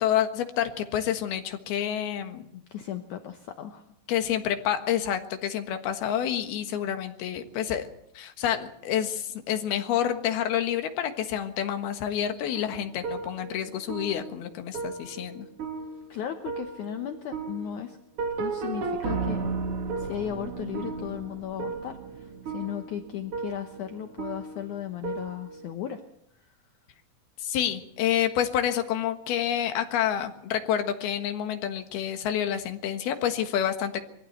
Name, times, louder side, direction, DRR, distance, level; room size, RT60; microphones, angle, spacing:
voice 1, 0.0-2.6 4.1-7.9 8.2-15.5 27.4-34.0, left 10 dB, 85° left, 7 dB, 3.5 m, -28 dB
voice 2, 2.7-3.8 16.1-18.0 18.4-19.4 20.0-26.0, left 10 dB, 65° left, 7 dB, 2.2 m, -36 dB
sound 1, 12.5-25.7, right 4 dB, 50° right, 2.1 m, -35 dB
23.0 x 15.0 x 8.1 m, 0.76 s
omnidirectional pair, 4.3 m